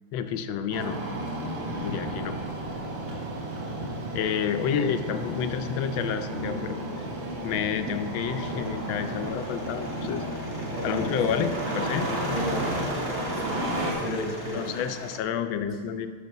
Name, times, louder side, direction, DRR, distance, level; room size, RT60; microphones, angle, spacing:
voice 1, 0.1-1.0 1.8-2.4 4.1-6.8 7.4-10.2 10.8-12.1 14.0-14.3 14.5-16.1, left 8 dB, 75° left, 9 dB, 1.3 m, -29 dB
Engine starting, 0.7-13.9, right 1 dB, 70° right, 1.9 m, -32 dB
sound 1, 6.9-15.2, equal, 15° left, 0.7 m, -39 dB
voice 2, 10.7-11.5 12.3-12.7 13.2-14.8, equal, 40° right, -3 dB, 0.6 m, -35 dB
7.0 x 6.0 x 5.3 m, 1.5 s
omnidirectional pair, 2.3 m